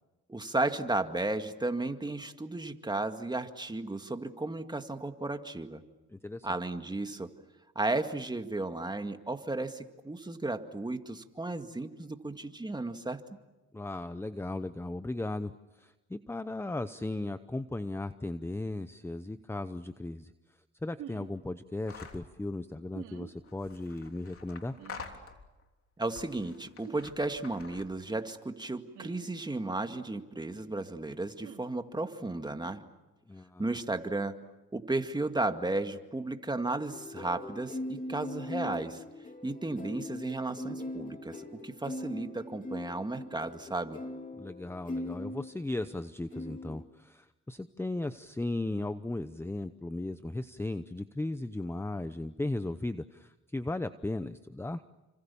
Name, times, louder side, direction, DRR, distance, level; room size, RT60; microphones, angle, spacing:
voice 1, 0.3-5.8 6.4-7.3 7.8-13.2 26.0-32.8 33.6-34.4 34.7-39.0 39.4-44.0, right 2 dB, 15° right, 7 dB, 2.0 m, -34 dB
voice 2, 6.1-6.5 13.7-20.3 20.8-24.8 33.3-33.6 44.4-54.8, left 2 dB, 10° left, 12 dB, 0.8 m, -36 dB
sound 1, 21.0-21.3 22.9-23.3 24.8-25.0 26.8-27.0 28.9-29.3 31.4-31.6, right 11 dB, 80° right, 3.1 m, -46 dB
sound 2, 21.9-22.3 23.4-25.6 26.1-28.1, left 5 dB, 45° left, 3.3 m, -48 dB
sound 3, 36.9-46.0 46.3-46.8, left 1 dB, 25° left, 2.9 m, -41 dB
30.0 x 26.0 x 7.1 m, 1.1 s
cardioid pair, 90°, 30 cm